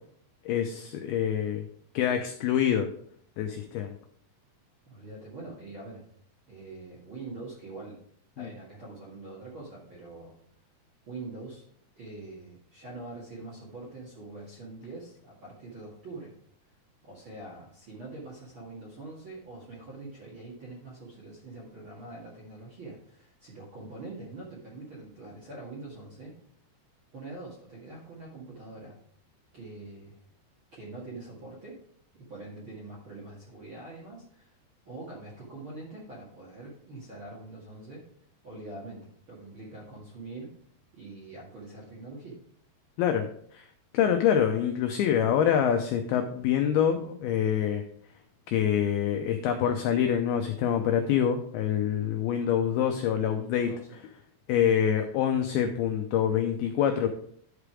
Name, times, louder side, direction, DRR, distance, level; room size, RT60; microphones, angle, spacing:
voice 1, 0.5-1.7 1.9-2.9 3.4-3.9 8.4-8.5 43.0-43.3 43.5-43.6 43.9-47.8 48.5-53.7 54.5-57.1, left 9 dB, 90° left, 6 dB, 2.1 m, -26 dB
voice 2, 4.8-6.0 6.5-8.0 8.4-10.3 11.1-11.6 11.9-16.3 17.0-26.4 27.1-29.0 29.5-30.2 30.7-31.8 32.1-34.5 34.8-38.0 38.4-40.5 40.9-42.4 53.6-54.0, right 2 dB, 45° right, -6 dB, 1.7 m, -44 dB
11.0 x 5.0 x 4.8 m, 0.63 s
omnidirectional pair, 5.2 m